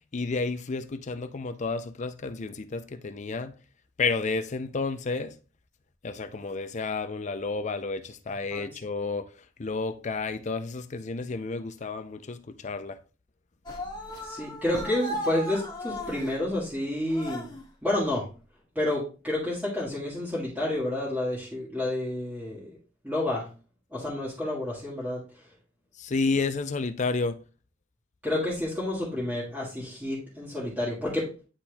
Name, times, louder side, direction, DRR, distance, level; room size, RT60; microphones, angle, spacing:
voice 1, 0.1-3.5 4.0-5.3 6.0-9.3 9.6-13.0 26.0-27.4, left 4 dB, 35° left, 0.5 m, -31 dB
sound 1, 13.7-16.4 17.1-17.7, equal, 20° left, 1.6 m, -36 dB
voice 2, 14.2-17.5 17.8-18.3 18.7-22.8 23.0-23.5 23.9-25.2 28.2-31.3, left 1 dB, 10° right, 1.7 m, -30 dB
10.0 x 4.3 x 2.3 m
head